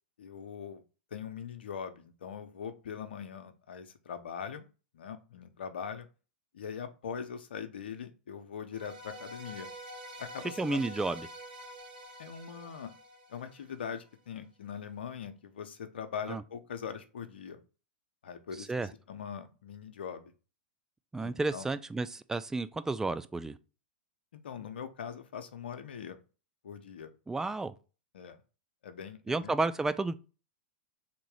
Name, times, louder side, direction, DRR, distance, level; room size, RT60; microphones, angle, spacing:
voice 1, 0.2-0.8 1.1-4.6 4.9-6.1 6.5-9.7 10.2-10.8 12.2-12.9 13.3-17.6 18.2-20.3 21.2-21.6 24.3-26.2 26.6-27.1 28.1-28.4 28.8-29.5, left 7 dB, 80° left, 0.8 m, -41 dB
sound 1, 8.7-14.0, equal, 65° right, 1.6 m, -47 dB
voice 2, 10.6-11.3 16.3-16.4 18.6-18.9 21.1-23.6 27.3-27.8 29.3-30.1, right 3 dB, 10° right, 0.4 m, -32 dB
3.7 x 3.0 x 4.8 m
hypercardioid pair, 110°, 6 cm